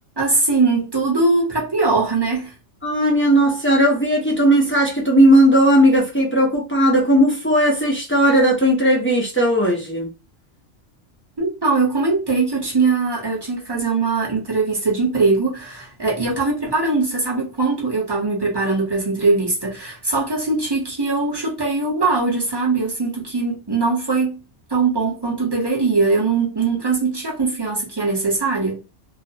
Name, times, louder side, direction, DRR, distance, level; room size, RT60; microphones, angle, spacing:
voice 1, 0.2-2.5 11.4-24.4 24.7-28.8, right 3 dB, 25° right, 0.8 m, -21 dB
voice 2, 2.8-10.1, equal, 15° left, 0.5 m, -16 dB
2.4 x 2.1 x 2.7 m
omnidirectional pair, 1.3 m